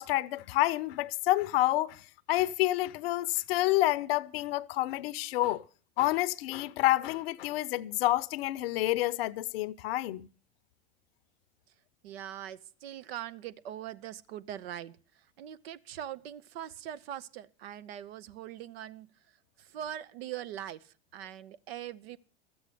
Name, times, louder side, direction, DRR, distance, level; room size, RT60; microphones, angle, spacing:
voice 1, 0.0-2.0 2.3-5.6 6.0-10.3, left 16 dB, 65° left, 0.7 m, -28 dB
voice 2, 12.0-15.0 15.4-19.1 19.6-22.2, right 11 dB, 70° right, 0.8 m, -42 dB
13.0 x 7.9 x 8.3 m
hypercardioid pair, 95°, 32 cm